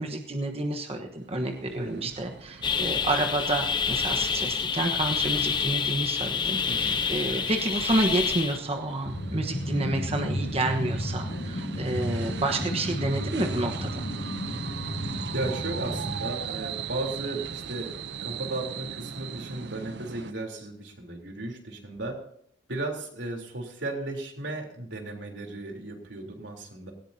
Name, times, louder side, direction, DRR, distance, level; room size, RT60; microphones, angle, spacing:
voice 1, 0.0-14.0, right 2 dB, 35° right, 3 dB, 1.2 m, -29 dB
sound 1, 1.1-20.3, right 6 dB, 65° right, 0.7 m, -40 dB
voice 2, 1.7-2.1 6.7-7.4 15.3-17.9 18.2-22.2 22.7-26.9, right 2 dB, 85° right, 1 dB, 3.6 m, -35 dB
sound 2, 2.6-8.6, left 6 dB, 25° left, 0.8 m, -28 dB
sound 3, 9.0-16.2, equal, 50° left, 2.2 m, -33 dB
18.0 x 17.5 x 2.8 m, 0.68 s
head